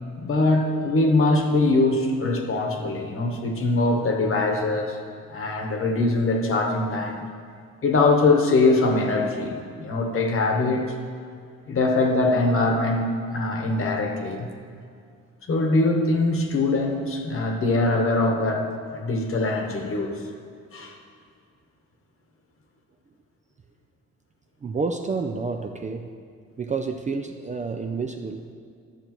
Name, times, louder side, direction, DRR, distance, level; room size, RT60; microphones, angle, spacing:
voice 1, 0.2-5.0 5.3-7.2 7.8-10.8 11.7-14.5 15.4-18.7 18.9-20.2 20.7-21.0, left 2 dB, 45° left, 2 dB, 1.1 m, -22 dB
voice 2, 24.6-26.1 26.6-28.5, right 4 dB, 25° right, 4 dB, 0.4 m, -29 dB
11.5 x 6.6 x 3.0 m, 2.2 s
cardioid pair, 90°, 30 cm